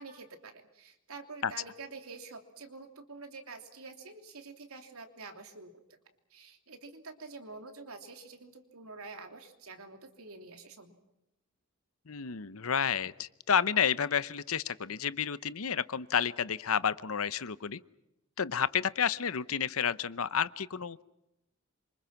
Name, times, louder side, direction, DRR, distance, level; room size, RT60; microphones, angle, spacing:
voice 1, 0.0-5.7 6.3-11.0, right 3 dB, 80° right, 5 dB, 3.1 m, -47 dB
voice 2, 12.1-17.8 18.4-21.0, left 7 dB, 75° left, 16 dB, 0.8 m, -30 dB
27.5 x 25.5 x 6.0 m, 0.88 s
head